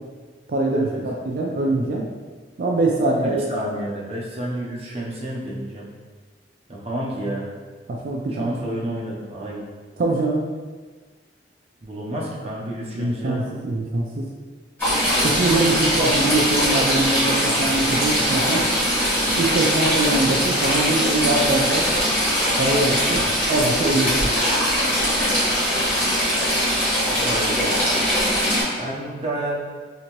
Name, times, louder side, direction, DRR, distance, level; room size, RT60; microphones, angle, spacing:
voice 1, 0.5-2.1 2.6-3.3 8.0-8.5 10.0-10.4 12.9-14.2 15.2-18.6 19.4-21.9 22.5-24.3, right 2 dB, 55° right, -2 dB, 0.4 m, -23 dB
voice 2, 1.5-1.8 3.2-5.9 6.7-7.5 8.3-9.6 11.8-13.5 26.9-27.6 28.8-29.5, right 1 dB, 35° right, -5 dB, 0.7 m, -30 dB
Stream / Trickle dribble, 14.8-28.6, equal, 15° left, 1.4 m, -21 dB
3.4 x 2.8 x 3.0 m, 1.4 s
head